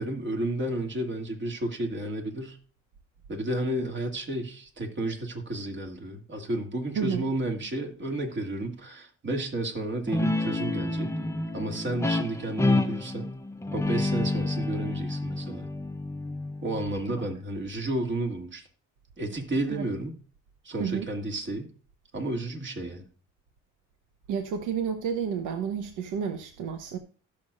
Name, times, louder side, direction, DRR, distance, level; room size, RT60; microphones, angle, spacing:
voice 1, 0.0-2.6 3.3-11.1 11.5-13.4 13.7-15.7 16.6-18.7 19.2-20.1 20.6-21.7 22.1-23.0, right 1 dB, 40° right, 2.4 m, -32 dB
voice 2, 7.0-7.3 19.7-19.9 20.8-21.1 24.3-27.0, right 7 dB, 90° right, 1.1 m, -30 dB
Guitar, 10.1-17.2, left 2 dB, 10° left, 0.8 m, -29 dB
16.5 x 6.9 x 2.6 m
cardioid pair, 90°, 30 cm